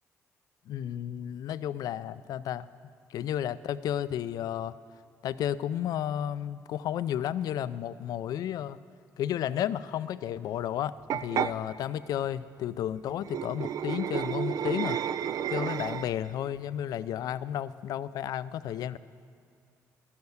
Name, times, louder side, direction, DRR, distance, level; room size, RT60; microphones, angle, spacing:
voice 1, 0.7-2.7 3.1-4.7 5.2-8.8 9.2-15.0 15.5-19.0, left 10 dB, 70° left, 16 dB, 0.4 m, -32 dB
sound 1, 11.1-11.5 13.2-16.3, right 9 dB, 60° right, 0.4 m, -31 dB
12.0 x 7.1 x 7.9 m, 2.4 s
supercardioid pair, 60°, 7 cm